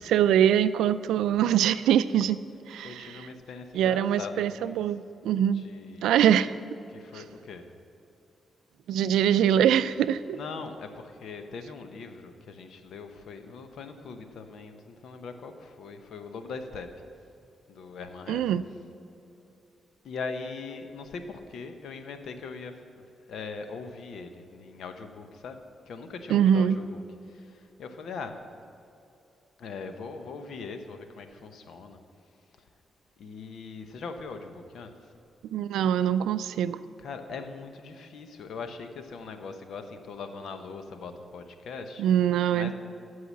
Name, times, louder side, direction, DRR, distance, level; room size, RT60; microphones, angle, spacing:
voice 1, 0.0-2.4 2.7-3.3 3.7-5.7 6.0-6.5 7.1-7.2 8.9-10.4 18.3-18.6 26.3-26.8 35.4-36.8 42.0-42.7, right 9 dB, 90° right, 14 dB, 0.3 m, -23 dB
voice 2, 2.8-4.8 5.4-6.1 6.9-7.6 10.3-16.9 17.7-18.4 20.0-27.0 27.3-28.4 29.6-32.0 33.2-34.9 37.0-42.0 42.5-42.7, left 4 dB, 75° left, 7 dB, 0.9 m, -41 dB
14.0 x 4.8 x 7.3 m, 2.8 s
cardioid pair, 65°, 0 cm